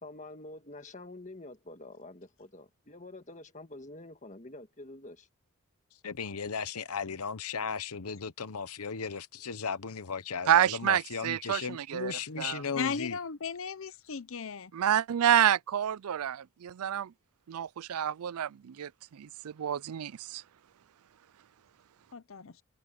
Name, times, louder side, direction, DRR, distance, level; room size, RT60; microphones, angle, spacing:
voice 1, 0.0-5.3, left 2 dB, 35° left, 1.6 m, -47 dB
voice 2, 6.0-13.2, left 6 dB, 85° left, 1.0 m, -36 dB
voice 3, 10.5-12.1 12.4-12.6 14.7-17.1 17.5-20.4, right 10 dB, 85° right, 0.4 m, -28 dB
voice 4, 12.7-14.7 22.1-22.6, left 5 dB, 65° left, 0.7 m, -36 dB
head